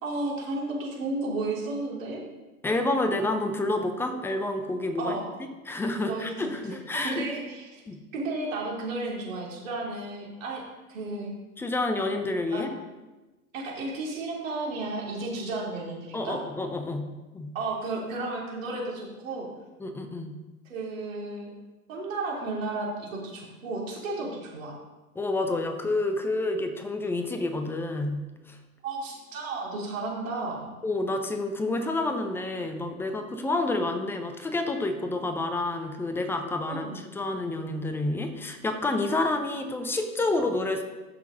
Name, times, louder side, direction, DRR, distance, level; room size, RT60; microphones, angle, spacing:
voice 1, 0.0-2.2 5.0-5.3 6.0-6.3 6.7-7.8 8.1-10.6 10.9-11.3 12.5-12.6 13.5-16.4 17.5-19.5 20.6-21.5 21.9-24.7 28.8-30.7 36.6-37.0, right 2 dB, 60° right, -3 dB, 3.0 m, -33 dB
voice 2, 2.6-5.2 5.7-7.2 7.9-8.0 11.6-12.7 16.1-17.5 19.8-20.4 25.2-28.6 30.8-40.8, left 2 dB, 5° left, 6 dB, 0.5 m, -29 dB
13.5 x 6.1 x 3.8 m, 1.1 s
figure-of-eight pair, 105°, 44 cm